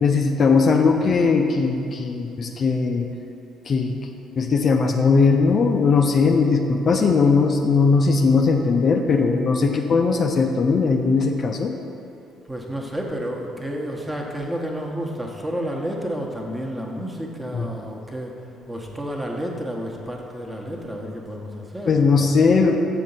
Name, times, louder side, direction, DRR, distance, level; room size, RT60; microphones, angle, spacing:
voice 1, 0.0-3.1 3.7-4.0 4.4-11.7 17.5-17.7 21.8-22.8, left 4 dB, 45° left, 3 dB, 0.4 m, -19 dB
voice 2, 12.5-18.4 18.7-22.3, equal, 15° right, 0 dB, 1.1 m, -30 dB
7.4 x 3.9 x 5.5 m, 2.7 s
figure-of-eight pair, 50°, 0 cm